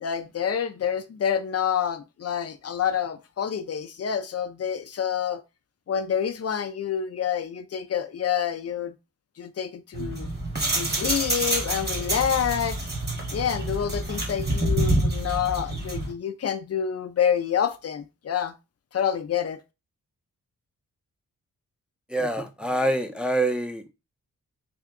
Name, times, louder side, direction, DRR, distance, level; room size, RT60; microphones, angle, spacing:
voice 1, 0.0-5.4 5.9-8.9 9.4-10.3 10.7-12.9 13.3-18.5 18.9-19.6, left 8 dB, 50° left, 0.5 m, -27 dB
sound 1, 9.9-16.1, right 1 dB, 30° right, 1.4 m, -27 dB
voice 2, 22.1-23.9, right 1 dB, 5° right, 0.5 m, -26 dB
3.4 x 2.7 x 3.7 m
cardioid pair, 80°, 32 cm